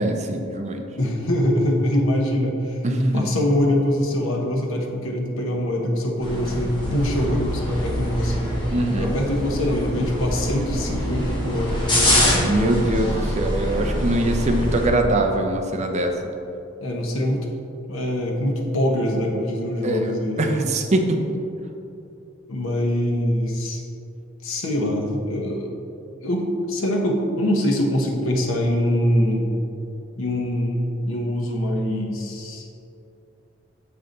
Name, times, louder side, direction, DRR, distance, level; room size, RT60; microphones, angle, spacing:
voice 1, 0.0-0.8 2.8-3.3 8.7-9.1 12.4-16.1 19.8-21.3, right 1 dB, 35° right, 3 dB, 0.6 m, -23 dB
voice 2, 1.0-2.8 3.1-8.5 9.0-12.6 16.8-17.5 17.9-20.4 22.5-23.8 24.4-25.7 26.2-29.5 30.2-32.7, left 1 dB, 85° left, 0 dB, 1.0 m, -23 dB
sound 1, 6.2-14.9, equal, 25° left, 1.7 m, -25 dB
6.7 x 5.6 x 3.9 m, 2.7 s
head